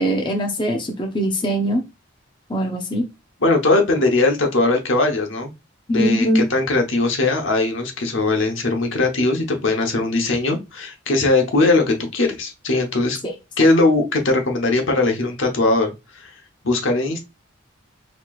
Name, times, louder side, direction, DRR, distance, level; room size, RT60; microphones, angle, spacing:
voice 1, 0.0-1.8 2.5-3.0 5.9-6.5 13.2-13.3, equal, 25° left, 2 dB, 0.6 m, -21 dB
voice 2, 3.4-5.5 5.9-13.2 13.6-15.9 16.2-16.3 16.6-17.2, left 2 dB, 80° left, 3 dB, 1.0 m, -19 dB
4.4 x 3.0 x 2.4 m, 0.24 s
head